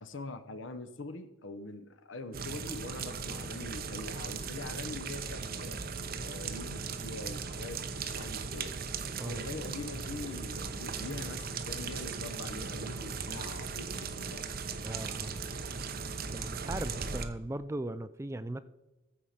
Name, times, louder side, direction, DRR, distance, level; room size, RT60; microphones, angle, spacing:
voice 1, 0.0-5.8 6.2-8.7 9.3-14.5, left 2 dB, 65° left, 11 dB, 0.9 m, -43 dB
sound 1, 2.3-17.2, right 5 dB, 45° right, 0.8 m, -38 dB
voice 2, 14.8-15.4 16.3-18.6, right 1 dB, 15° right, 13 dB, 0.3 m, -38 dB
14.5 x 4.9 x 5.8 m, 1.1 s
head